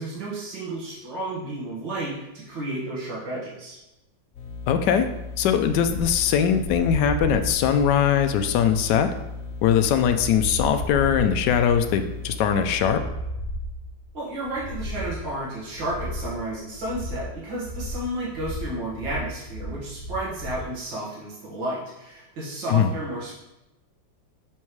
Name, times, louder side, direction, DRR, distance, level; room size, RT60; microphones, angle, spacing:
voice 1, 0.0-3.8 14.1-23.4, right 1 dB, 85° right, -6 dB, 2.3 m, -32 dB
sound 1, 4.3-13.0, left 4 dB, 50° left, 1.3 m, -36 dB
voice 2, 4.7-5.1 5.4-9.1 9.6-13.0 22.7-22.9, left 8 dB, 75° left, 8 dB, 1.1 m, -21 dB
sound 2, 5.8-20.7, equal, 40° right, 1.1 m, -35 dB
7.1 x 4.4 x 3.1 m, 0.94 s
omnidirectional pair, 2.0 m